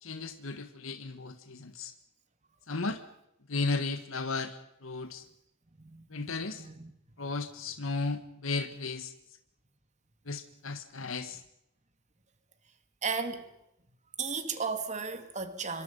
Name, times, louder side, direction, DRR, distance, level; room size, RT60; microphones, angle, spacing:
voice 1, 0.0-1.9 2.7-3.0 3.5-5.2 6.1-6.7 7.2-9.1 10.2-11.4, left 3 dB, 75° left, 1.5 m, -35 dB
voice 2, 5.8-6.9 13.0-13.5 14.2-15.8, right 5 dB, 35° right, 2.5 m, -35 dB
26.5 x 23.5 x 5.4 m
head